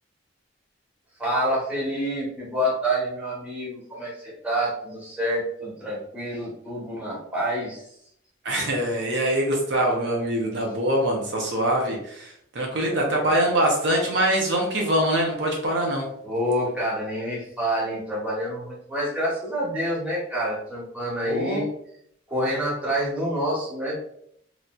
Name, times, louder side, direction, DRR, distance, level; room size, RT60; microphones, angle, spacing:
voice 1, 1.2-7.8 10.7-10.8 12.9-13.2 16.2-21.7 22.3-24.0, equal, 5° right, -7 dB, 1.0 m, -27 dB
voice 2, 8.4-16.1 21.2-21.6, right 1 dB, 65° right, 0 dB, 0.6 m, -24 dB
3.1 x 2.6 x 2.3 m, 0.71 s
head